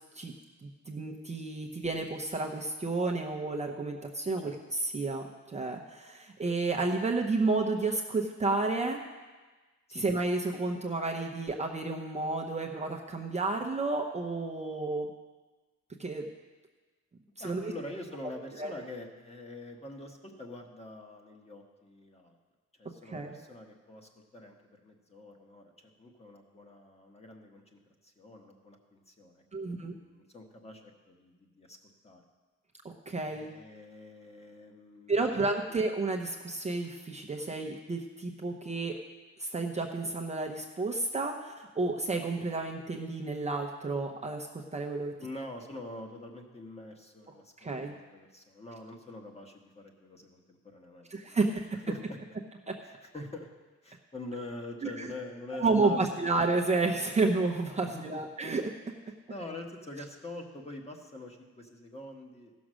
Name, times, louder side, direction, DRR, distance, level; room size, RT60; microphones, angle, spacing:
voice 1, 0.6-9.0 9.9-15.1 16.0-16.2 17.4-17.7 18.6-18.7 23.1-23.3 29.5-29.9 32.8-33.5 35.1-39.0 39.4-44.5 44.7-45.1 47.6-47.9 51.1-51.8 52.7-52.8 54.8-55.1 55.6-58.6, right 3 dB, 25° right, 1 dB, 0.8 m, -31 dB
voice 2, 17.4-22.3 22.8-31.8 32.0-32.2 33.2-35.8 45.2-51.4 51.7-52.2 52.8-53.5 53.8-56.0 57.8-58.2 59.3-62.5, left 2 dB, 20° left, 2 dB, 1.4 m, -45 dB
15.0 x 6.2 x 6.3 m, 1.3 s
cardioid pair, 130°, 30 cm